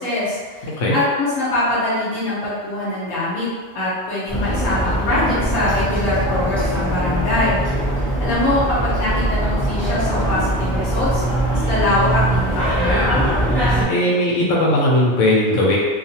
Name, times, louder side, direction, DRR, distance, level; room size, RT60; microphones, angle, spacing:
voice 1, 0.0-7.6 8.2-11.2 11.5-13.2, left 2 dB, 35° left, -9 dB, 0.9 m, -23 dB
sound 1, 4.3-13.8, right 1 dB, ahead, 0.6 m, -21 dB
voice 2, 13.9-15.8, left 1 dB, 85° left, -4 dB, 1.0 m, -17 dB
2.4 x 2.4 x 2.8 m, 1.5 s
omnidirectional pair, 1.3 m